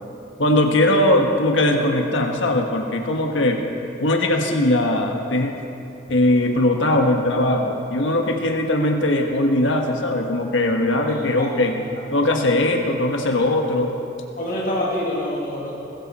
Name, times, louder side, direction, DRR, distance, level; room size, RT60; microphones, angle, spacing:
voice 1, 0.4-3.6 4.0-5.6 6.1-11.8 12.1-14.0, left 1 dB, 80° left, 2 dB, 1.4 m, -20 dB
voice 2, 11.1-11.5 12.0-12.1 14.4-15.7, left 1 dB, 45° left, -5 dB, 2.5 m, -26 dB
21.5 x 14.0 x 4.3 m, 2.9 s
head